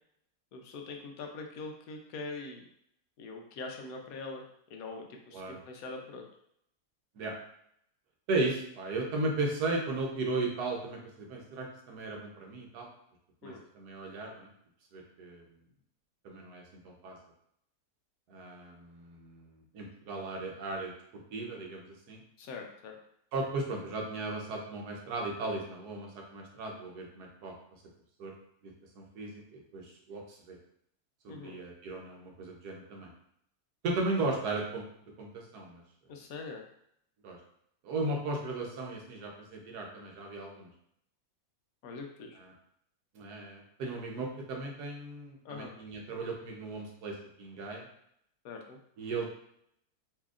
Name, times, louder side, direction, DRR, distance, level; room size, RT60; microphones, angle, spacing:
voice 1, 0.5-2.6 3.2-4.4 4.7-6.2 13.4-13.6 22.4-23.0 31.3-31.6 36.1-36.6 41.8-42.4 45.4-45.7 48.4-48.8, left 3 dB, 70° left, 2 dB, 1.0 m, -43 dB
voice 2, 8.3-12.9 13.4-14.5 14.9-15.4 16.2-17.2 18.3-22.2 23.3-27.5 28.2-28.3 28.6-30.6 31.2-33.1 33.8-34.8 35.2-35.8 37.2-37.4 37.8-40.7 42.4-42.5 43.1-47.8 49.0-49.3, right 2 dB, 90° right, 0 dB, 1.3 m, -36 dB
4.2 x 2.8 x 2.4 m, 0.72 s
omnidirectional pair, 1.6 m